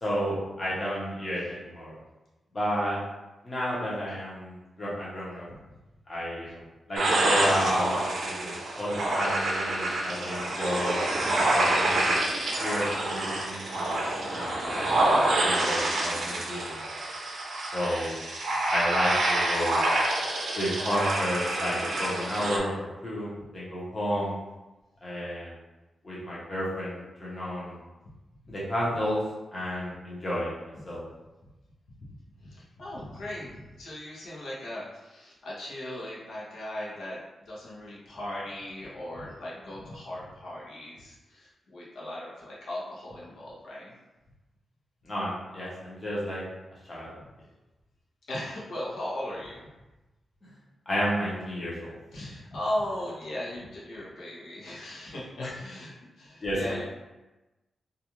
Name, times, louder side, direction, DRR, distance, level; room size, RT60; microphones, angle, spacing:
voice 1, 0.0-1.9 2.5-3.0 3.4-5.4 6.1-7.9 8.2-11.0 11.5-12.2 12.6-14.9 15.4-16.7 17.7-18.2 18.7-19.9 20.6-24.4 25.0-25.5 26.0-27.8 28.5-29.2 29.5-31.0 45.0-46.4 46.9-47.1 50.9-51.9 55.4-55.5 56.4-56.8, equal, 25° left, -7 dB, 0.7 m, -31 dB
sound 1, 7.0-22.6, right 1 dB, 70° right, 0.5 m, -27 dB
voice 2, 32.4-37.2 37.5-43.9 48.3-49.7 52.1-56.8, left 1 dB, 85° left, -6 dB, 0.8 m, -37 dB
2.5 x 2.3 x 2.9 m, 1.1 s
wide cardioid pair, 175°, 0 cm